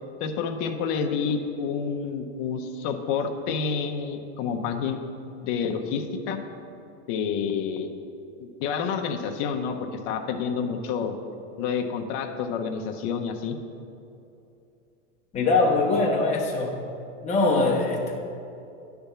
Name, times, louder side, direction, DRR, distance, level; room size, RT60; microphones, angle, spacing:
voice 1, 0.2-5.0 5.4-6.4 7.1-7.9 8.4-9.7 10.1-11.1 11.6-13.6, left 6 dB, 35° left, 4 dB, 0.7 m, -28 dB
voice 2, 15.3-16.7 17.2-18.2, left 3 dB, 20° left, -3 dB, 1.1 m, -22 dB
10.0 x 3.5 x 6.8 m, 2.7 s
supercardioid pair, 160°, 36 cm